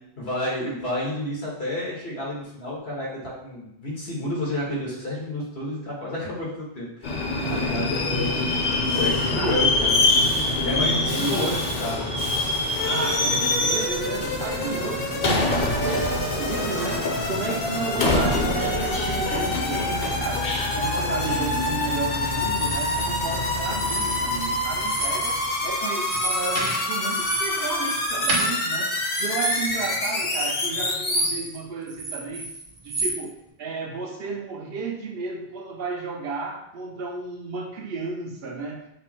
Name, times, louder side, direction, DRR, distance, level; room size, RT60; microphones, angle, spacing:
voice 1, 0.2-7.2 7.5-8.3 8.9-9.9 10.2-12.2 17.7-18.5, left 1 dB, 90° left, -5 dB, 1.7 m, -30 dB
Subway metro underground, 7.0-25.5, left 2 dB, 45° left, 0.7 m, -26 dB
voice 2, 7.4-7.8 8.3-8.4 9.3-9.7 10.8-11.4 12.9-32.5 32.8-39.0, right 4 dB, 75° right, 3 dB, 0.9 m, -33 dB
sound 1, 12.8-31.3, left 1 dB, 65° left, 1.0 m, -28 dB
sound 2, 22.4-23.0 23.7-24.5 24.8-25.4 25.7-31.6 31.9-33.2, right 2 dB, 55° right, 1.1 m, -30 dB
5.5 x 2.0 x 4.3 m, 0.79 s
omnidirectional pair, 1.0 m